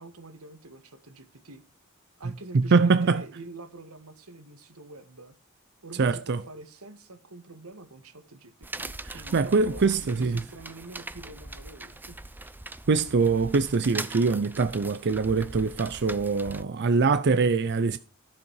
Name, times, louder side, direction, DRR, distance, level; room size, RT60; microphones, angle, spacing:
voice 1, 0.0-1.6 2.2-5.3 5.8-12.5, right 2 dB, 85° right, 1.7 m, -46 dB
voice 2, 2.5-3.2 6.0-6.4 9.1-10.4 12.9-18.0, right 4 dB, 50° right, 0.5 m, -23 dB
sound 1, 8.6-16.6, right 2 dB, 10° right, 0.6 m, -41 dB
13.5 x 7.4 x 4.7 m
head